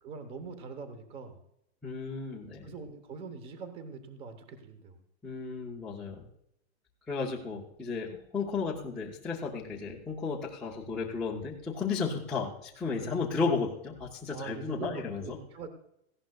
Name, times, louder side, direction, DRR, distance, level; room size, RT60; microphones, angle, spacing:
voice 1, 0.0-1.4 2.6-5.0 13.0-13.2 14.3-15.7, right 4 dB, 15° right, 9 dB, 0.8 m, -43 dB
voice 2, 1.8-2.7 5.2-6.3 7.1-15.4, left 4 dB, 5° left, -8 dB, 0.4 m, -34 dB
18.0 x 15.0 x 2.3 m, 0.77 s
supercardioid pair, 170°, 34 cm